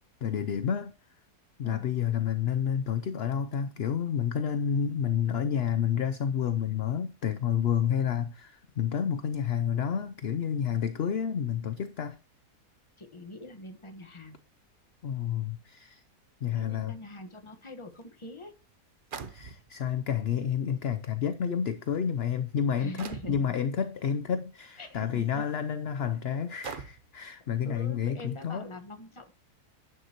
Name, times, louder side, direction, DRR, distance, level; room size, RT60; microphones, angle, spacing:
voice 1, 0.2-0.9 1.6-12.2 15.0-16.0 16.4-17.0 19.3-28.7, left 8 dB, 55° left, 0.7 m, -30 dB
voice 2, 13.0-14.4 16.5-18.5 22.8-23.4 24.8-25.4 25.9-26.0 27.6-29.3, left 2 dB, 20° left, 1.3 m, -44 dB
sound 1, 18.0-18.1 19.1-19.9 20.8-20.9 21.7-22.0 23.0-23.5 24.8-24.9 25.5-25.6 26.6-27.2, right 5 dB, 40° right, 0.8 m, -41 dB
11.0 x 9.3 x 3.0 m
omnidirectional pair, 1.7 m